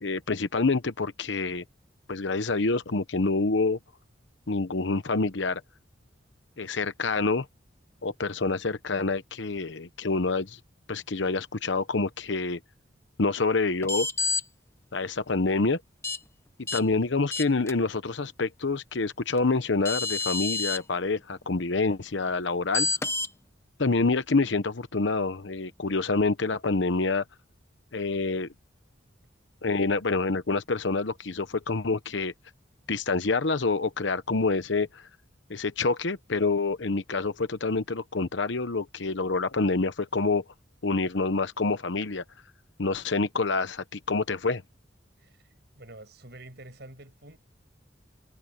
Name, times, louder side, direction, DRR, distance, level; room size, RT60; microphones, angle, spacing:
voice 1, 0.0-1.6 2.1-3.8 4.5-5.6 6.6-7.5 8.0-10.6 10.9-12.6 13.2-14.1 14.9-15.8 16.7-22.9 23.8-27.2 27.9-28.5 29.6-32.3 32.9-35.0 35.5-40.4 40.8-42.2 42.8-44.6, left 3 dB, 70° left, 0.9 m, -27 dB
sound 1, 13.8-14.4 16.0-16.2 16.7-16.8 17.3-17.7 19.4-19.5 19.8-20.8 22.7-23.3, left 3 dB, 15° left, 0.7 m, -28 dB
voice 2, 45.7-47.4, right 1 dB, 55° right, 7.9 m, -47 dB
head